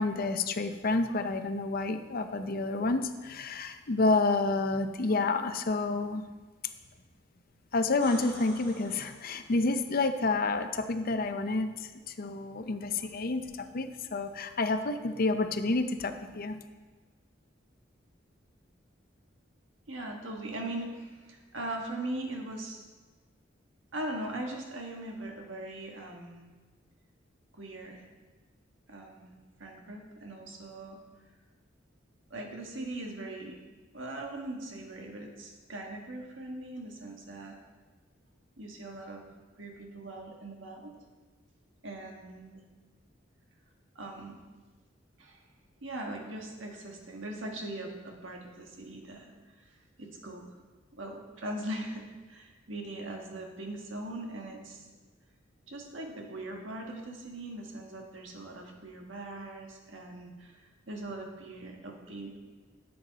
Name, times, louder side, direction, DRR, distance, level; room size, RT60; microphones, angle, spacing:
voice 1, 0.0-6.2 7.7-16.6, left 3 dB, 50° left, 8 dB, 0.6 m, -29 dB
sound 1, 7.8-9.7 13.5-13.6, equal, 60° right, 3.3 m, -47 dB
voice 2, 19.9-22.8 23.9-26.4 27.5-28.0 28.9-29.3 29.6-31.0 32.3-33.6 33.9-37.6 38.6-39.2 39.6-40.9 41.8-42.6 43.9-44.4 45.2-45.4 45.8-49.7 50.0-50.6 50.9-54.9 55.7-62.4, right 1 dB, 80° right, 1 dB, 1.5 m, -40 dB
10.5 x 7.8 x 4.0 m, 1.3 s
head